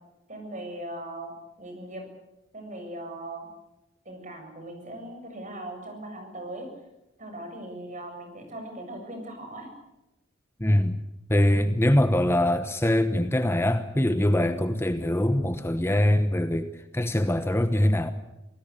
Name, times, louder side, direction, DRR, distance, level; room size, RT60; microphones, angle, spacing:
voice 1, 0.3-1.3 1.6-2.0 2.5-3.5 4.0-6.7 7.2-9.7, right 1 dB, 40° right, 7.6 m, -39 dB
voice 2, 10.6-11.0 11.3-18.1, left 1 dB, 15° left, 1.0 m, -23 dB
27.0 x 18.5 x 8.4 m
head